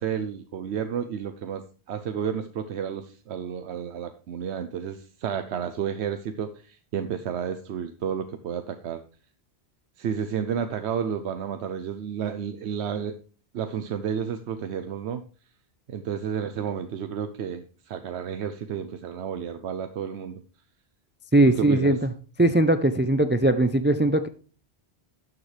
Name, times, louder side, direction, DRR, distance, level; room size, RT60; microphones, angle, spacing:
voice 1, 0.0-1.6 1.9-9.0 10.0-13.2 13.5-15.2 15.9-20.4 21.6-21.9, right 8 dB, 85° right, 9 dB, 1.0 m, -31 dB
voice 2, 21.3-22.1 22.4-24.3, right 1 dB, 20° right, 11 dB, 0.3 m, -20 dB
12.0 x 7.3 x 3.3 m, 0.40 s
omnidirectional pair, 1.1 m